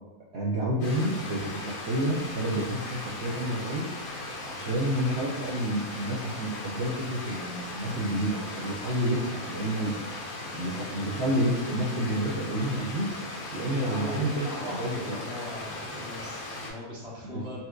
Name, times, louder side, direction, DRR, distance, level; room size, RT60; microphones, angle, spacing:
voice 1, 0.3-3.9 4.4-9.9 10.6-13.1 13.5-15.2 17.3-17.6, right 1 dB, 65° right, -6 dB, 0.7 m, -29 dB
Stream, 0.8-16.7, left 2 dB, 65° left, 1.1 m, -38 dB
voice 2, 13.6-17.6, left 1 dB, 5° right, -6 dB, 0.4 m, -39 dB
4.2 x 2.4 x 2.3 m, 1.2 s
omnidirectional pair, 1.6 m